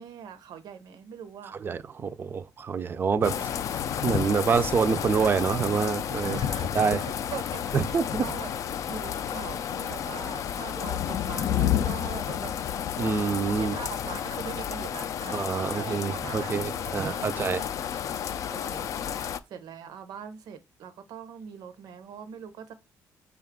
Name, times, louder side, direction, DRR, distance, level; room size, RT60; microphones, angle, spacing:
voice 1, 0.0-1.6 3.2-3.6 6.2-8.5 8.9-12.5 13.6-17.7 18.5-19.2 19.5-22.7, right 7 dB, 80° right, 0.6 m, -42 dB
voice 2, 1.6-3.3 4.0-6.4 6.7-7.0 7.7-8.3 13.0-13.7 15.3-17.6, right 6 dB, 35° right, 0.4 m, -26 dB
sound 1, 3.2-19.4, left 9 dB, 55° left, 0.3 m, -31 dB
5.2 x 2.3 x 3.5 m
cardioid pair, 115°, 7 cm